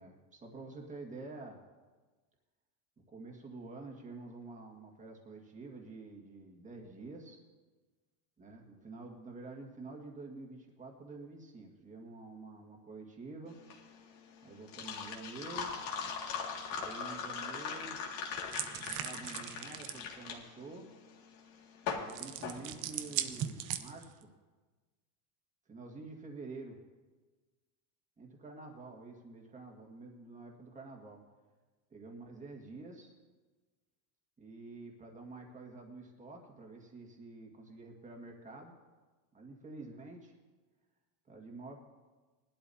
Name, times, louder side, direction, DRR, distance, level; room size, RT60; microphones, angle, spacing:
voice 1, 0.0-1.6 3.1-7.4 8.4-13.6 14.4-15.8 16.7-18.0 18.7-20.9 21.8-24.3 25.7-26.8 28.2-31.2 31.9-33.1 34.4-38.7 39.3-40.4 41.3-41.8, right 3 dB, 15° right, 1 dB, 1.8 m, -48 dB
sound 1, 13.5-23.4, left 6 dB, 65° left, 2.2 m, -40 dB
sound 2, 18.5-20.0 22.1-24.2, right 11 dB, 40° right, 0.7 m, -39 dB
20.0 x 12.0 x 2.8 m, 1.3 s
supercardioid pair, 145°, 46 cm